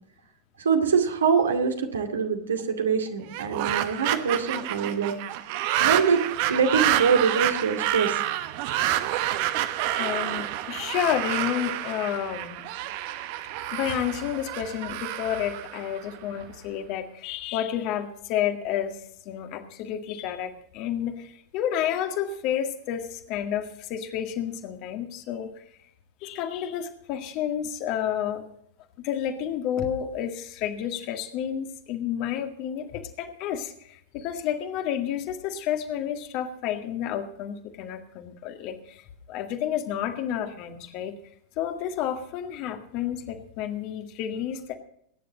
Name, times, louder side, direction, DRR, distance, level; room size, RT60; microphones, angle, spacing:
voice 1, 0.6-5.1 5.8-6.2 6.5-8.2, right 6 dB, 70° right, 4 dB, 2.3 m, -24 dB
sound 1, 3.2-16.4, right 13 dB, 50° right, 1.1 m, -28 dB
voice 2, 10.0-12.7 13.1-13.2 13.7-19.0 19.3-25.6 26.2-28.4 29.0-41.1 41.6-44.8, left 10 dB, 40° left, 5 dB, 1.9 m, -30 dB
21.0 x 10.5 x 4.0 m, 0.68 s
figure-of-eight pair, 90°, 0 cm